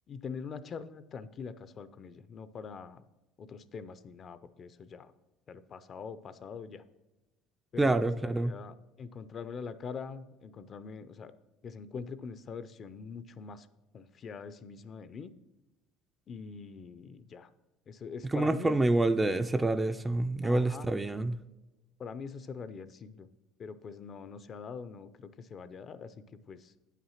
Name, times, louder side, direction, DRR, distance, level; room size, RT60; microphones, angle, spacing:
voice 1, 0.1-3.0 3.4-5.1 5.5-6.8 7.7-11.3 11.6-13.7 13.9-15.3 16.3-17.5 17.9-18.8 20.4-20.9 22.0-23.3 23.6-26.7, left 5 dB, 40° left, 13 dB, 0.5 m, -43 dB
voice 2, 7.8-8.5 18.3-21.4, right 2 dB, 10° right, 9 dB, 0.4 m, -27 dB
8.9 x 5.9 x 5.7 m, 1.1 s
supercardioid pair, 115°, 0 cm